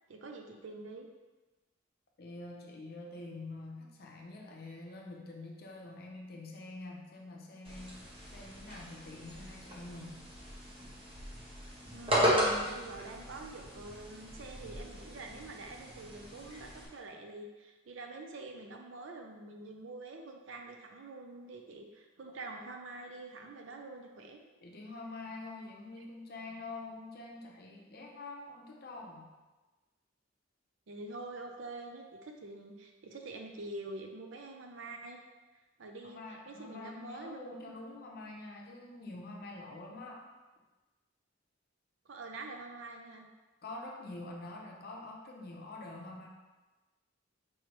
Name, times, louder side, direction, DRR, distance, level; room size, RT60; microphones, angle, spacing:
voice 1, 0.1-1.1 11.9-24.4 26.0-26.1 30.9-35.2 35.8-37.7 42.1-43.3, right 2 dB, 75° right, 3 dB, 0.5 m, -46 dB
voice 2, 2.2-10.2 24.6-29.3 36.0-40.2 43.6-46.3, left 2 dB, 55° left, 0 dB, 0.7 m, -46 dB
sound 1, 7.6-16.8, equal, 30° right, 0.8 m, -36 dB
4.6 x 3.2 x 3.0 m, 1.2 s
head